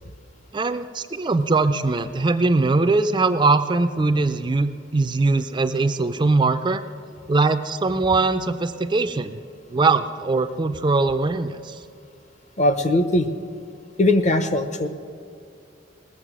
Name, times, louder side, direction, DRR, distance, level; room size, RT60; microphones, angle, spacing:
voice 1, 0.5-6.8 7.3-9.4 9.7-11.8, right 3 dB, 25° right, 9 dB, 0.4 m, -21 dB
voice 2, 12.6-13.3 14.0-14.9, left 1 dB, 35° left, 9 dB, 0.7 m, -20 dB
19.0 x 7.2 x 6.1 m, 2.5 s
head